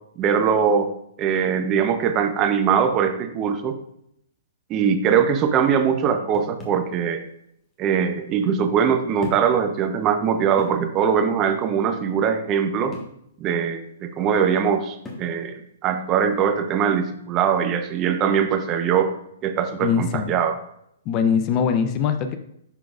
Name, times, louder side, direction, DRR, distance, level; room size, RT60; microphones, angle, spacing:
voice 1, 0.2-0.9 1.2-3.8 4.7-7.2 7.8-12.9 13.4-19.1 19.4-20.6, right 7 dB, 30° right, 8 dB, 0.7 m, -21 dB
sound 1, 6.3-6.9 8.0-8.1 9.2-9.6 10.0-10.1 10.6-10.9 12.9-13.2 15.1-15.4, left 1 dB, 10° left, 1.3 m, -36 dB
voice 2, 19.8-20.3 21.1-22.4, left 7 dB, 35° left, 8 dB, 0.5 m, -22 dB
11.0 x 3.9 x 2.4 m, 0.74 s
hypercardioid pair, 140°, 0 cm